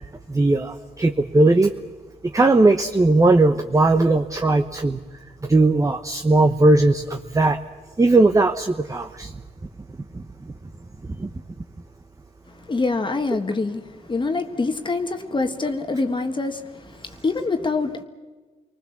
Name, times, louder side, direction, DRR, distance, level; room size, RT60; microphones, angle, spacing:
voice 1, 0.3-1.7 2.3-5.0 5.5-7.6 8.0-9.3 11.2-11.3, right 2 dB, 20° right, 6 dB, 1.0 m, -18 dB
voice 2, 12.7-18.0, left 3 dB, 30° left, 6 dB, 1.6 m, -25 dB
29.0 x 20.5 x 7.3 m, 1.3 s
cardioid pair, 100°, 15 cm